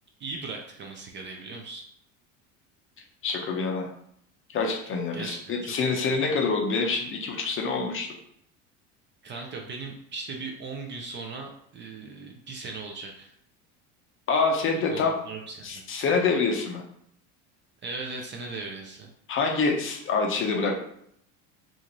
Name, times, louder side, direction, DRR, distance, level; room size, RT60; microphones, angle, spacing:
voice 1, 0.2-1.8 5.1-6.1 9.2-13.3 14.9-15.6 17.8-19.1, right 3 dB, 30° right, 2 dB, 0.4 m, -38 dB
voice 2, 3.2-3.9 4.5-8.1 14.3-15.1 15.6-16.8 19.3-20.8, left 4 dB, 35° left, 1 dB, 0.5 m, -26 dB
2.5 x 2.4 x 2.9 m, 0.70 s
supercardioid pair, 100°, 38 cm